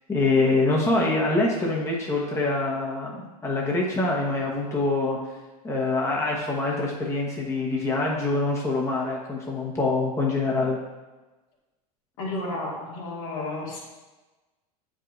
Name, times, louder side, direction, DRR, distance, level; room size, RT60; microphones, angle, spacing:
voice 1, 0.1-5.2 5.6-10.8, left 2 dB, 15° left, -3 dB, 1.1 m, -25 dB
voice 2, 12.2-13.8, left 2 dB, 65° left, -4 dB, 2.0 m, -32 dB
7.9 x 5.0 x 2.5 m, 1.2 s
hypercardioid pair, 105°, 19 cm